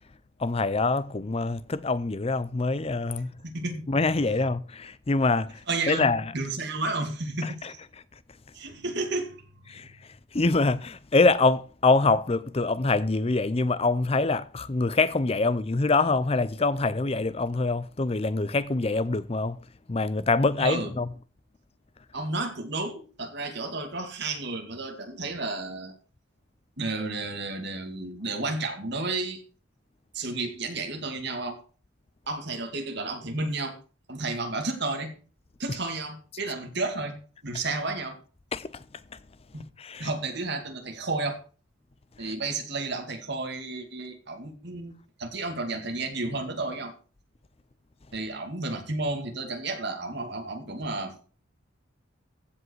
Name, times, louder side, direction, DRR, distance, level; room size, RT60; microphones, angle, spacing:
voice 1, 0.4-3.3 3.9-6.2 7.4-7.5 9.7-9.9 10.3-19.6 19.9-21.1 38.5-38.8 39.8-40.1 42.2-42.3, left 3 dB, 30° left, 0.6 m, -25 dB
voice 2, 3.4-3.9 5.7-7.8 8.5-9.8 20.6-20.9 22.1-25.9 26.8-29.4 30.1-31.6 32.3-33.8 34.1-35.1 35.6-37.1 37.4-38.2 39.5-39.7 40.0-41.4 42.2-46.9 48.1-51.1, right 3 dB, 55° right, 2.3 m, -32 dB
15.5 x 5.4 x 4.7 m
head